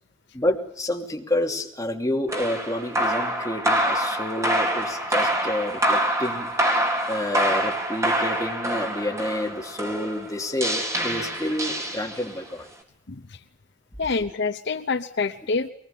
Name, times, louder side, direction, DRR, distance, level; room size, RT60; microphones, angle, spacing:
voice 1, 0.3-6.5 7.1-12.7, left 1 dB, 15° left, 1 dB, 2.9 m, -29 dB
sound 1, 2.3-12.5, right 1 dB, 15° right, 4.2 m, -26 dB
voice 2, 13.1-13.4 14.0-15.7, left 4 dB, 60° left, 9 dB, 0.9 m, -27 dB
23.0 x 20.0 x 8.6 m, 0.66 s
head